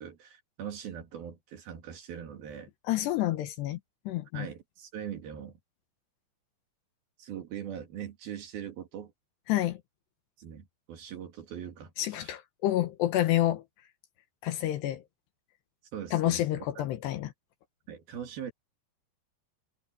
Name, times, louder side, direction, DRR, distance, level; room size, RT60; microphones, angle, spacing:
voice 1, 0.0-2.7 4.3-5.6 7.2-9.1 10.4-12.3 15.9-16.7 17.9-18.5, right 9 dB, 55° right, 4.0 m, -41 dB
voice 2, 2.8-3.8 4.1-4.5 9.5-9.8 12.0-13.6 14.4-15.0 16.1-17.3, left 14 dB, 75° left, 2.9 m, -28 dB
omnidirectional pair, 5.4 m